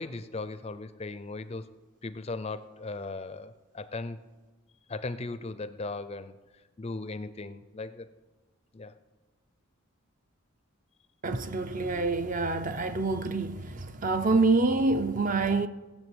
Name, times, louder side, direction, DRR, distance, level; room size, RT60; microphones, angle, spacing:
voice 1, 0.0-1.7 2.0-4.2 4.9-6.4 6.8-8.1 8.7-8.9, left 3 dB, 30° left, 0.5 m, -37 dB
voice 2, 11.2-15.7, right 3 dB, 35° right, 0.6 m, -26 dB
18.5 x 7.3 x 7.9 m
head